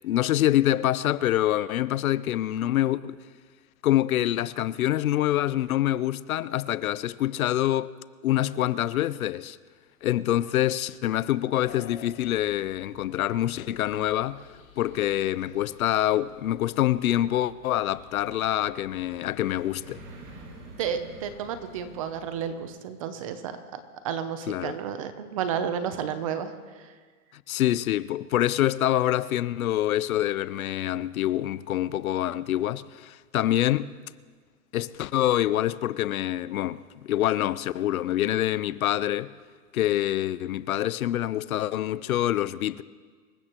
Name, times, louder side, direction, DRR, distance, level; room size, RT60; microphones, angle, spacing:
voice 1, 0.0-3.2 3.8-7.9 8.2-9.6 10.0-14.4 14.8-20.0 24.5-24.8 27.5-33.9 34.7-39.3 39.7-42.8, left 13 dB, 65° left, 0.6 m, -26 dB
sound 1, 11.6-22.1, left 6 dB, 40° left, 3.8 m, -53 dB
sound 2, 18.4-22.7, right 2 dB, 90° right, 3.9 m, -49 dB
voice 2, 20.8-23.8 24.0-26.9, right 8 dB, 25° right, 0.6 m, -32 dB
26.0 x 15.0 x 3.0 m
hypercardioid pair, 155°, 46 cm